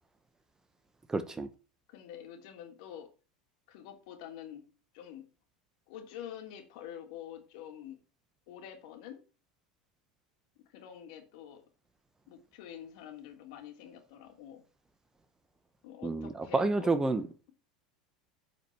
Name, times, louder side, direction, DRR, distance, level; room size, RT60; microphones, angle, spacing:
voice 1, 1.1-1.5 16.0-17.3, right 3 dB, 15° right, 1.2 m, -29 dB
voice 2, 1.9-3.1 3.7-4.6 4.9-5.2 5.9-8.0 8.5-9.3 10.6-11.6 12.3-14.6 15.8-17.5, left 10 dB, 65° left, 3.1 m, -47 dB
9.1 x 5.2 x 6.9 m
hypercardioid pair, 85°, 4 cm